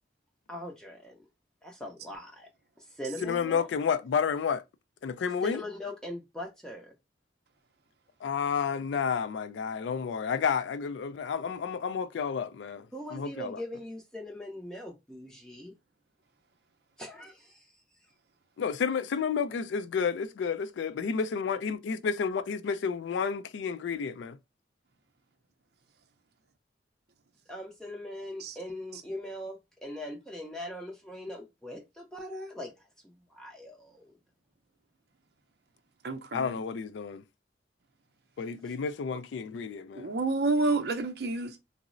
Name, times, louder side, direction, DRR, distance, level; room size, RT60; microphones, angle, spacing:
voice 1, 0.5-1.2 1.6-2.5 2.8-3.7 5.4-6.9 12.9-15.7 17.0-17.7 27.5-32.7 33.0-34.2, left 1 dB, 5° left, 0.4 m, -41 dB
voice 2, 3.2-4.6 5.0-5.6 8.2-13.6 18.6-24.4 36.3-37.2 38.4-40.1, left 6 dB, 80° left, 0.3 m, -31 dB
voice 3, 36.0-36.5 40.0-41.6, right 3 dB, 60° right, 0.5 m, -29 dB
3.8 x 2.0 x 2.4 m
head